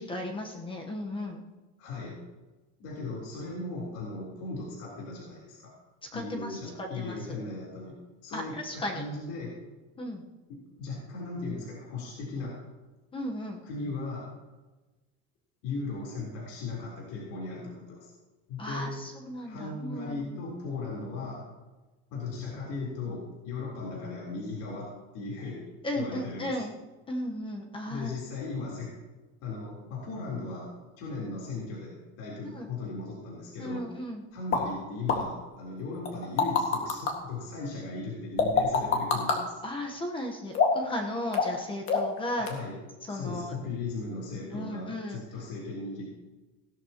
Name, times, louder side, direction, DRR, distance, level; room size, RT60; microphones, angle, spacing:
voice 1, 0.0-1.4 6.1-7.2 8.3-9.0 10.0-10.2 13.1-13.6 18.6-20.3 25.8-26.7 27.1-28.1 32.4-32.7 33.6-34.2 39.6-42.5 43.1-43.5 44.5-45.2, left 1 dB, 15° left, 2 dB, 1.1 m, -35 dB
voice 2, 1.8-2.2 2.8-5.7 6.1-9.5 10.5-12.6 13.6-14.3 15.6-18.1 18.5-19.0 19.4-21.4 22.1-25.7 25.9-26.6 27.9-28.9 29.4-33.9 34.3-39.6 42.4-42.8 43.1-46.1, left 3 dB, 60° left, -4 dB, 3.8 m, -37 dB
sound 1, 34.5-34.6 35.1-35.2 36.1-37.1 38.4-39.4 40.5-40.9 41.3-41.6 41.9-42.2 42.5-42.6, left 5 dB, 40° left, 1.9 m, -24 dB
16.5 x 12.5 x 3.0 m, 1.2 s
cardioid pair, 160°, 33 cm